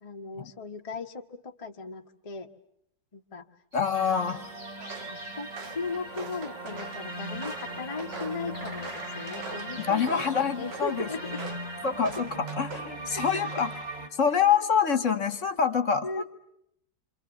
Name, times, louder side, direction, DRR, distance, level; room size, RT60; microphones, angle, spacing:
voice 1, 0.0-2.5 3.1-3.4 3.8-4.2 4.9-11.4 13.1-13.5 16.0-16.2, left 4 dB, 25° left, 3 dB, 1.0 m, -38 dB
voice 2, 3.7-4.4 9.8-11.1 11.8-13.7 14.2-16.2, left 7 dB, 50° left, 10 dB, 1.5 m, -26 dB
sound 1, 3.7-11.4, equal, 40° right, 7.2 m, -49 dB
sound 2, 3.9-14.1, right 1 dB, 25° right, 2.7 m, -39 dB
Walk footsteps, 4.8-5.1 5.5-7.0 7.4-9.7 10.1-10.9 11.4-11.7 12.0-12.9 13.3-13.7, right 4 dB, 85° right, 2.3 m, -42 dB
27.5 x 26.0 x 7.1 m, 0.75 s
omnidirectional pair, 1.8 m